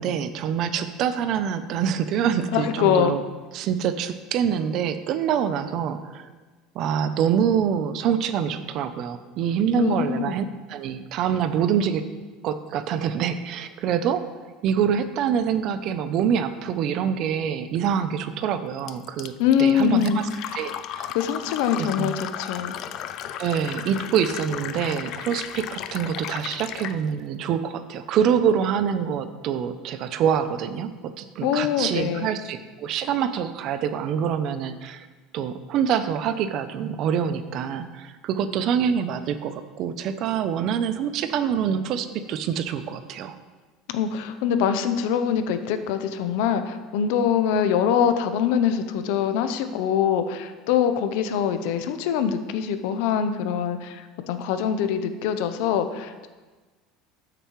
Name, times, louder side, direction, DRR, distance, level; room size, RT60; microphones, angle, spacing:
voice 1, 0.0-3.2 3.5-6.3 6.7-12.0 12.4-14.2 14.6-19.3 19.6-21.1 21.8-22.1 23.4-35.1 35.3-43.4, right 8 dB, 45° right, 11 dB, 0.5 m, -25 dB
voice 2, 2.5-3.2 9.8-10.4 19.4-20.6 21.1-22.8 31.4-32.3 43.9-56.3, left 8 dB, 70° left, 10 dB, 0.7 m, -24 dB
Fill (with liquid), 18.9-27.0, left 10 dB, 45° left, 0.3 m, -35 dB
13.0 x 6.7 x 3.1 m, 1.3 s
cardioid pair, 165°, 0 cm